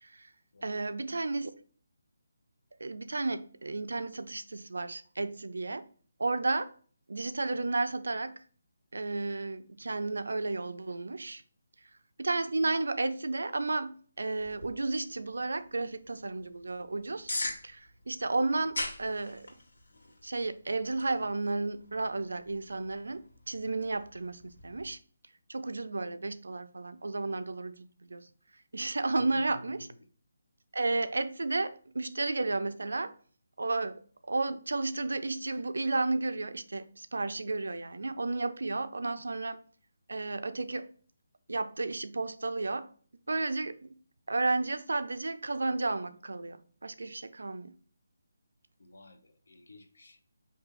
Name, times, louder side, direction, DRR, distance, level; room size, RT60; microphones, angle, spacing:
voice 1, 0.6-1.5 2.8-5.8 6.2-6.7 7.1-8.3 8.9-11.4 12.2-17.3 17.6-19.5 20.2-25.0 25.5-28.3 28.7-29.9 30.7-33.1 33.6-34.0 34.3-39.6 40.1-40.9 41.5-42.9 43.3-43.9 44.3-47.7, right 3 dB, 85° right, 0.5 m, -32 dB
sound 1, 14.4-24.9, left 2 dB, 80° left, 1.5 m, -43 dB
voice 2, 29.2-30.0 48.8-50.2, left 1 dB, 60° left, 0.8 m, -52 dB
4.9 x 2.8 x 3.7 m
hypercardioid pair, 180°, 0 cm